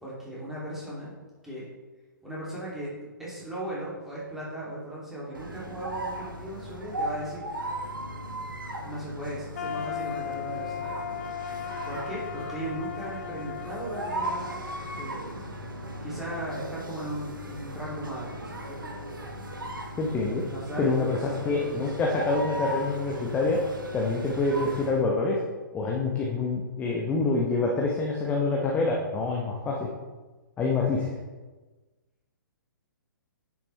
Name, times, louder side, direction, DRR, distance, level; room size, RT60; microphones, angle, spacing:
voice 1, 0.0-1.1 1.4-1.6 2.2-7.4 8.8-11.0 11.8-15.4 16.0-18.9 20.5-22.0, right 1 dB, 5° right, -8 dB, 2.8 m, -37 dB
sound 1, 5.3-25.0, right 1 dB, 75° right, 1.4 m, -37 dB
sound 2, 9.5-15.5, left 8 dB, 45° left, 0.5 m, -37 dB
voice 2, 20.0-20.4 20.8-21.2 21.4-23.6 23.9-25.4 25.7-29.9 30.6-31.2, left 3 dB, 15° left, -1 dB, 0.9 m, -26 dB
9.8 x 7.2 x 3.3 m, 1.3 s
figure-of-eight pair, 120°, 11 cm